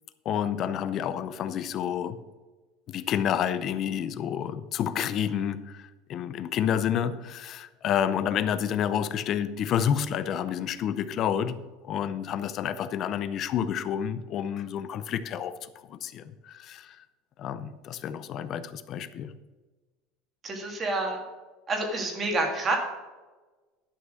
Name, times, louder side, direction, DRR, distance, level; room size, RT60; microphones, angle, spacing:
voice 1, 0.2-2.2 2.9-11.6 11.8-17.0 17.4-19.3, left 9 dB, 30° left, 0.6 m, -29 dB
voice 2, 20.4-21.2 21.7-22.8, right 2 dB, 20° right, 1.9 m, -28 dB
11.0 x 6.0 x 6.3 m
cardioid pair, 175°, 0 cm